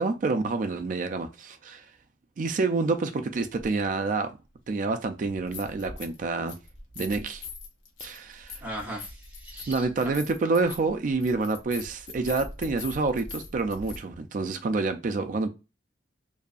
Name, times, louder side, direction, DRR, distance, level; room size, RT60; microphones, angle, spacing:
voice 1, 0.0-1.8 2.4-4.3 4.7-6.6 7.0-7.4 8.0-8.5 9.7-15.5, right 3 dB, 40° right, 0.3 m, -28 dB
sound 1, 3.6-3.7 5.3-6.2 6.5-14.0, left 4 dB, 80° left, 0.7 m, -42 dB
voice 2, 8.6-10.1, right 1 dB, 10° right, 0.9 m, -38 dB
2.6 x 2.3 x 2.4 m
head